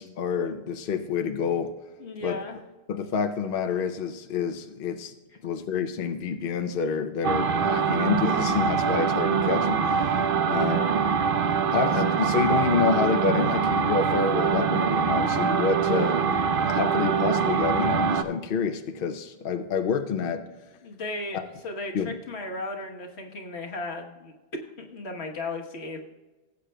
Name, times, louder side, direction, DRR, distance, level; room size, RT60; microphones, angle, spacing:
voice 1, 0.0-1.7 2.2-2.4 2.9-5.1 5.4-10.2 10.5-10.8 11.7-16.3 16.7-20.5 21.9-22.1, left 6 dB, 65° left, 7 dB, 0.8 m, -28 dB
voice 2, 2.0-2.6 10.4-11.0 20.8-24.3 24.8-26.0, left 2 dB, 85° left, 2 dB, 1.5 m, -36 dB
sound 1, 7.2-18.2, right 6 dB, 65° right, 0.8 m, -24 dB
18.0 x 8.2 x 2.2 m, 1.2 s
omnidirectional pair, 1.1 m